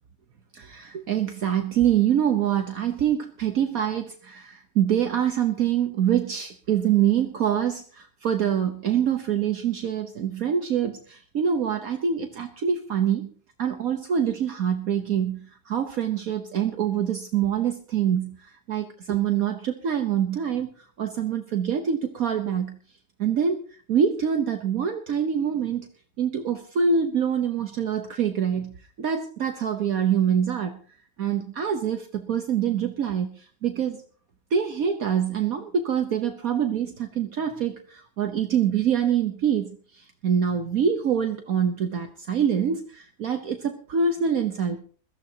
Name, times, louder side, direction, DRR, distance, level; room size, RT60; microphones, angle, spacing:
voice 1, 0.5-13.3 13.6-15.4 15.7-18.4 18.7-20.7 21.0-22.8 23.2-23.6 23.9-25.9 26.2-28.7 29.0-30.8 31.2-34.0 34.5-44.8, right 8 dB, 65° right, 6 dB, 1.4 m, -25 dB
21.5 x 14.5 x 2.9 m, 0.43 s
omnidirectional pair, 1.7 m